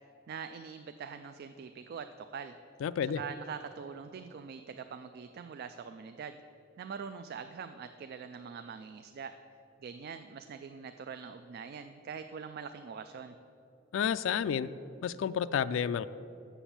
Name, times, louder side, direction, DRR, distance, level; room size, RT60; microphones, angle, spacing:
voice 1, 0.3-2.5 3.0-6.4 6.8-9.3 9.8-13.3, right 6 dB, 50° right, 9 dB, 0.3 m, -43 dB
voice 2, 2.8-3.2 13.9-14.7 15.0-16.1, left 8 dB, 75° left, 13 dB, 0.3 m, -30 dB
7.1 x 7.0 x 7.2 m, 2.8 s
head